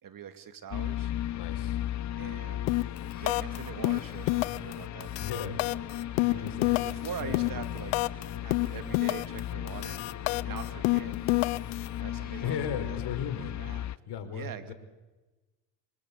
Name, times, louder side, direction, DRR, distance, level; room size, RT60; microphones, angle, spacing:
voice 1, 0.0-1.1 2.2-2.7 3.2-5.7 6.3-8.0 8.4-10.0 10.4-11.1 12.0-12.6 12.8-13.0 13.4-13.9 14.3-14.7, right 8 dB, 45° right, 9 dB, 2.5 m, -43 dB
sound 1, 0.7-14.0, left 12 dB, 40° left, 0.8 m, -36 dB
voice 2, 1.3-1.8 5.2-5.6 6.3-6.8 7.2-7.7 12.4-13.6 14.1-14.7, left 7 dB, 60° left, 9 dB, 4.5 m, -36 dB
sound 2, 2.7-3.0 3.3-3.6 3.8-4.7 5.0-8.2 8.5-9.4 9.7-11.9, left 24 dB, 85° left, 0.9 m, -28 dB
sound 3, 2.7-12.8, left 4 dB, 20° left, 7.0 m, -53 dB
26.5 x 25.0 x 8.5 m, 1.1 s
supercardioid pair, 95°, 45 cm